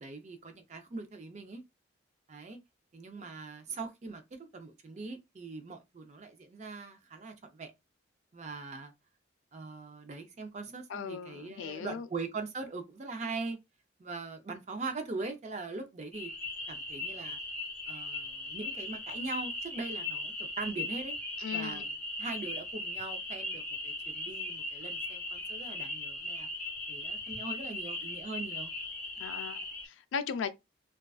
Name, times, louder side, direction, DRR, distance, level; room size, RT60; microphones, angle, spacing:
voice 1, 0.0-1.6 2.3-2.6 2.9-7.7 8.3-8.9 9.5-13.6 14.0-16.3 16.7-17.4 17.9-21.2 21.5-26.5 26.9-28.7, right 3 dB, 35° right, 0.4 m, -41 dB
voice 2, 10.9-12.1 21.4-21.8 29.2-30.5, left 6 dB, 80° left, 0.3 m, -38 dB
sound 1, 16.1-29.9, left 2 dB, 5° left, 0.7 m, -38 dB
2.3 x 2.3 x 2.3 m
head